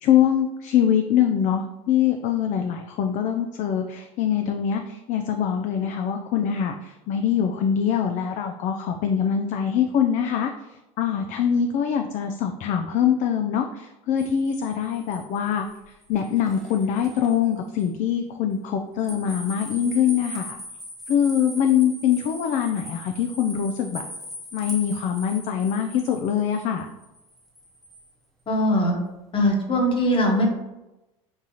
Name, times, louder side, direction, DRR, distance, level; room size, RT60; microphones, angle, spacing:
voice 1, 0.0-10.5 11.0-15.6 16.1-20.6 21.1-24.0 24.5-26.9, left 8 dB, 45° left, 5 dB, 0.4 m, -23 dB
sound 1, 14.2-17.4 17.8-17.9 19.0-28.1, left 1 dB, ahead, 0.9 m, -41 dB
voice 2, 28.5-29.0 29.3-30.5, equal, 30° left, 1 dB, 1.1 m, -21 dB
5.4 x 2.4 x 2.8 m, 0.98 s
hypercardioid pair, 85°, 18 cm